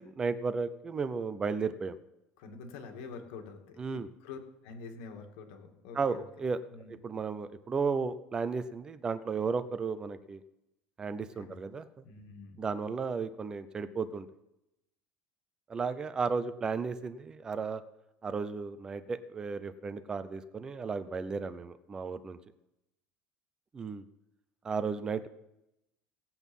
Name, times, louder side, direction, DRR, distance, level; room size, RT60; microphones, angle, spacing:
voice 1, 0.0-2.0 3.8-4.1 5.9-6.6 6.9-10.4 11.0-11.8 12.6-14.3 15.7-17.8 18.2-22.4 23.7-24.0 24.6-25.3, right 5 dB, 15° right, 12 dB, 0.6 m, -34 dB
voice 2, 2.4-6.2 6.7-6.9 11.3-11.6 12.0-12.7, left 5 dB, 85° left, 4 dB, 2.2 m, -47 dB
17.5 x 8.3 x 5.5 m, 0.87 s
cardioid pair, 175°, 5 cm